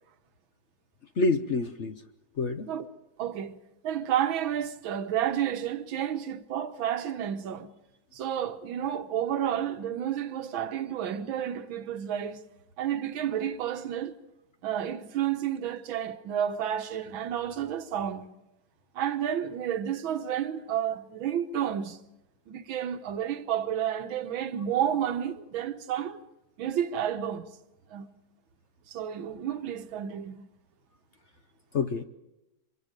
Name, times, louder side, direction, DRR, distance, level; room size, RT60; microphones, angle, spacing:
voice 1, 1.2-2.0 2.4-2.7 31.7-32.0, left 3 dB, 55° left, 0.8 m, -27 dB
voice 2, 3.2-3.6 3.8-7.7 8.1-12.4 12.8-14.1 14.6-18.3 19.0-22.0 22.5-26.2 26.6-27.6 27.9-28.1 28.9-30.4, right 10 dB, 75° right, 1.8 m, -31 dB
26.0 x 23.0 x 5.2 m
omnidirectional pair, 2.2 m